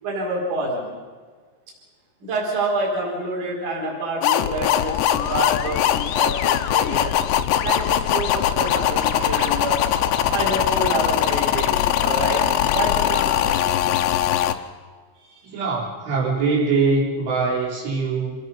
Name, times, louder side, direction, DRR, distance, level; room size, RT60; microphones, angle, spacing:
voice 1, 0.0-1.0 2.2-7.1 7.6-9.8 10.3-13.4 15.2-15.5, right 2 dB, 40° right, -2 dB, 5.6 m, -27 dB
sound 1, 4.2-14.5, left 11 dB, 80° left, 2.8 m, -21 dB
voice 2, 15.4-18.4, right 4 dB, 70° right, -5 dB, 6.2 m, -22 dB
27.0 x 19.5 x 5.6 m, 1.5 s
omnidirectional pair, 5.7 m